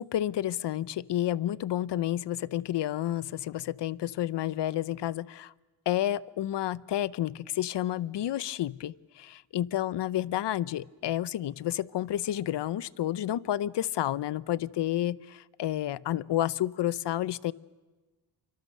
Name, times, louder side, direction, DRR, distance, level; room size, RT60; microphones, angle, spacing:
voice 1, 0.0-5.5 5.9-17.5, left 12 dB, 60° left, 19 dB, 0.7 m, -30 dB
29.0 x 24.5 x 6.7 m, 1.3 s
cardioid pair, 105°, 47 cm